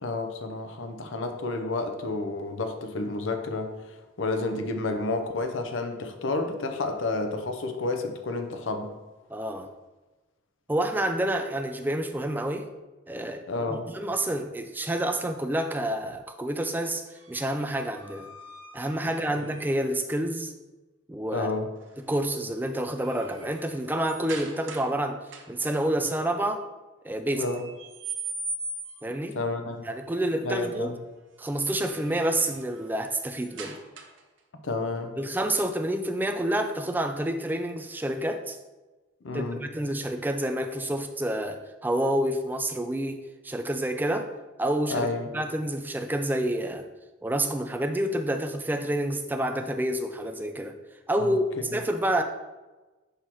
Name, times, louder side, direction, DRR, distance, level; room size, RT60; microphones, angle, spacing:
voice 1, 0.0-3.7 4.2-8.9 13.5-13.9 19.4-19.5 21.3-21.7 27.3-27.6 29.3-29.9 30.4-31.0 34.6-35.1 39.2-39.6 44.9-45.3 51.2-51.4, left 3 dB, 85° left, 6 dB, 0.8 m, -30 dB
voice 2, 9.3-9.7 10.7-12.7 13.1-18.3 18.7-20.5 21.1-21.5 22.0-26.7 27.0-27.5 29.0-29.4 29.8-30.9 31.4-33.8 35.2-38.6 39.3-44.3 44.6-46.9 47.2-50.8 51.1-52.2, right 1 dB, 10° right, 6 dB, 0.3 m, -28 dB
sound 1, 17.1-20.0 21.8-22.1 22.5-25.0 25.3-25.8 27.3-29.2 31.5-34.4, right 3 dB, 80° right, 0.8 m, -41 dB
6.4 x 5.5 x 3.1 m, 1.2 s
head